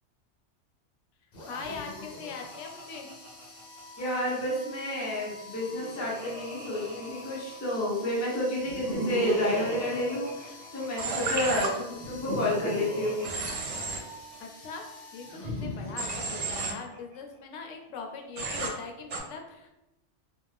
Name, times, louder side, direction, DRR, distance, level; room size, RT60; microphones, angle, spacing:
sound 1, 1.3-16.2, left 2 dB, 60° left, 0.8 m, -48 dB
voice 1, 1.5-3.1 14.4-14.8 15.1-19.7, left 5 dB, 85° left, 2 dB, 0.9 m, -41 dB
Laughter, 1.5-4.0 5.3-7.7 8.6-11.1 11.9-14.4 15.2-17.2, right 1 dB, 35° right, 0.7 m, -37 dB
voice 2, 4.0-13.3, left 1 dB, 20° left, -5 dB, 0.5 m, -30 dB
Human voice / Train, 11.0-11.7 13.2-14.0 16.0-16.7 18.4-18.7 19.1-19.2, right 3 dB, 80° right, 0.9 m, -32 dB
2.5 x 2.3 x 3.2 m, 0.93 s
omnidirectional pair, 1.2 m